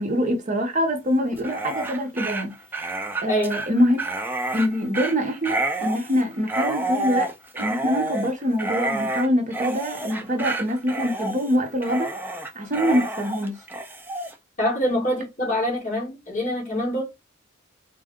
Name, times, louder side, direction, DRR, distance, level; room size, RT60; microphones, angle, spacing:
voice 1, 0.0-2.5 3.2-4.0 4.5-12.1 12.6-13.6, equal, 40° right, 0.8 m, -24 dB
Dog, 1.3-14.3, right 2 dB, 10° right, 0.4 m, -29 dB
voice 2, 14.6-17.0, left 1 dB, 40° left, 2.0 m, -25 dB
3.6 x 2.2 x 3.5 m
head